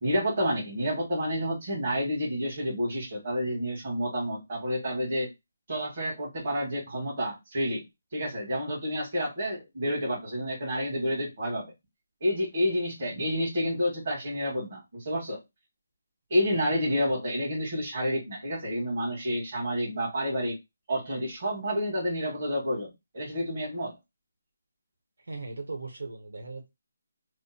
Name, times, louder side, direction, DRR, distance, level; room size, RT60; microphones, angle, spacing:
voice 1, 0.0-5.3 5.7-7.8 8.1-11.7 12.2-15.4 16.3-20.6 20.9-23.9, equal, 30° right, 1.9 m, -29 dB
voice 2, 25.2-26.7, right 3 dB, 80° right, 1.3 m, -38 dB
3.4 x 2.2 x 4.3 m
hypercardioid pair, 175°, 0 cm